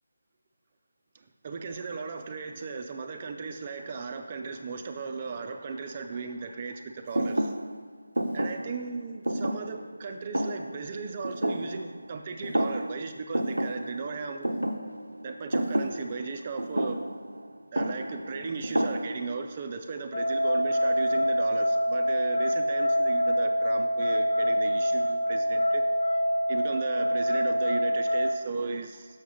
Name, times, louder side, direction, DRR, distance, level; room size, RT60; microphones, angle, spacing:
voice 1, 1.4-7.5 8.3-14.5 15.2-17.0 17.7-25.8 26.5-29.1, right 4 dB, 30° right, 5 dB, 0.5 m, -36 dB
Thump thud, 7.1-12.2 12.4-13.1 13.3-19.5, right 1 dB, 85° right, 0.6 m, -31 dB
sound 1, 20.1-28.3, equal, 50° left, 0.7 m, -25 dB
6.4 x 4.8 x 5.7 m, 1.4 s
figure-of-eight pair, 160°, 0 cm